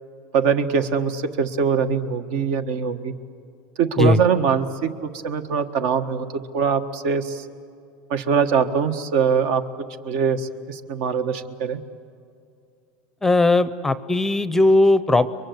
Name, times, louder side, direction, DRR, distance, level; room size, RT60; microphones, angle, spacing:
voice 1, 0.3-3.1 3.8-6.3 6.5-7.4 8.1-9.6 10.0-11.8, right 6 dB, 65° right, 9 dB, 1.5 m, -22 dB
voice 2, 13.2-15.3, left 2 dB, 5° left, 14 dB, 0.6 m, -18 dB
29.5 x 23.0 x 8.0 m, 2.5 s
supercardioid pair, 145°, 5 cm